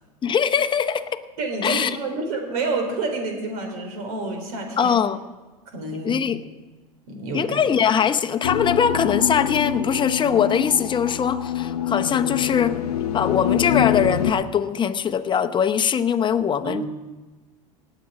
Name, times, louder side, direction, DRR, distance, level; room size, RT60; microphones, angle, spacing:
voice 1, 0.2-1.2 1.6-2.0 4.8-5.2 6.0-6.4 7.3-12.8 13.1-16.8, left 7 dB, 25° left, 9 dB, 0.8 m, -22 dB
voice 2, 1.4-5.0 5.7-6.1 7.1-7.5 16.6-16.9, right 3 dB, 70° right, 4 dB, 3.8 m, -28 dB
sound 1, 8.4-14.3, left 10 dB, 85° left, 0.8 m, -25 dB
18.5 x 7.7 x 4.9 m, 1.2 s
hypercardioid pair, 95°, 19 cm